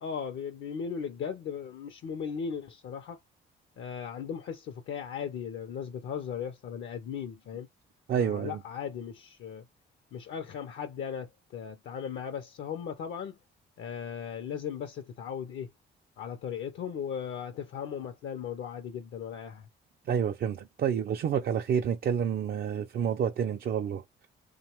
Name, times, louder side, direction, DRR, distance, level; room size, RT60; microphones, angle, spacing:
voice 1, 0.0-3.2 3.8-7.7 8.2-9.7 10.1-13.4 13.8-15.7 16.2-19.7, left 7 dB, 70° left, 0.5 m, -37 dB
voice 2, 8.1-8.6 20.1-24.0, right 8 dB, 50° right, 0.4 m, -29 dB
2.9 x 2.2 x 2.9 m
cardioid pair, 90°, 20 cm